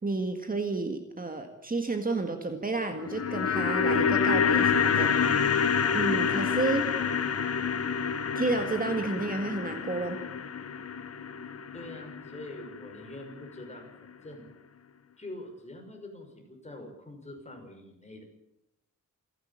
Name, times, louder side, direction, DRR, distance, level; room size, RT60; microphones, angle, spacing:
voice 1, 0.0-5.1 5.9-6.9 8.4-10.2, right 3 dB, 25° right, 5 dB, 1.9 m, -31 dB
sound 1, 2.9-13.2 13.4-13.5, left 6 dB, 50° left, 1.2 m, -28 dB
voice 2, 11.7-14.5 15.2-18.2, left 1 dB, 20° left, 2 dB, 6.0 m, -44 dB
28.5 x 11.5 x 8.8 m, 0.86 s
wide cardioid pair, 145°, 31 cm